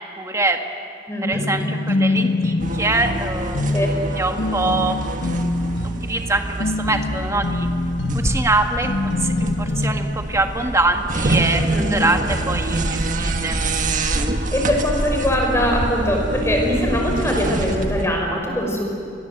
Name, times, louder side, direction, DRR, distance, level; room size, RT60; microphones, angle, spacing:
voice 1, 0.2-0.6 1.2-3.8 4.1-7.7 8.1-13.6, right 2 dB, 15° right, 4 dB, 1.7 m, -24 dB
voice 2, 1.1-1.5 3.7-3.9 11.7-12.0 14.5-18.9, equal, 15° left, 1 dB, 5.6 m, -22 dB
sound 1, 1.3-10.2, left 2 dB, 85° left, 1.2 m, -25 dB
sound 2, 2.6-18.1, right 2 dB, 45° right, 1.6 m, -26 dB
29.5 x 22.5 x 8.0 m, 2.6 s
head